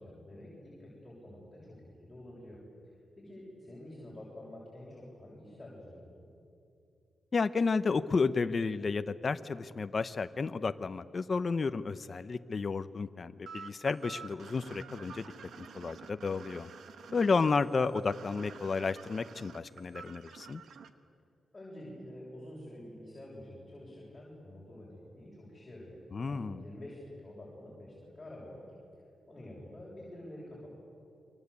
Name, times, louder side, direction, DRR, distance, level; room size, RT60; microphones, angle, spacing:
voice 1, 0.0-2.6 3.2-6.3 21.5-26.0 26.2-28.6 29.3-30.7, left 1 dB, 20° left, -5 dB, 7.5 m, -48 dB
voice 2, 7.3-15.3 15.6-16.7 17.1-20.6 26.1-26.6, left 4 dB, 40° left, 11 dB, 0.8 m, -32 dB
sound 1, 13.5-20.9, right 6 dB, 80° right, 1.3 m, -49 dB
29.0 x 23.5 x 8.5 m, 2.5 s
cardioid pair, 110°, 0 cm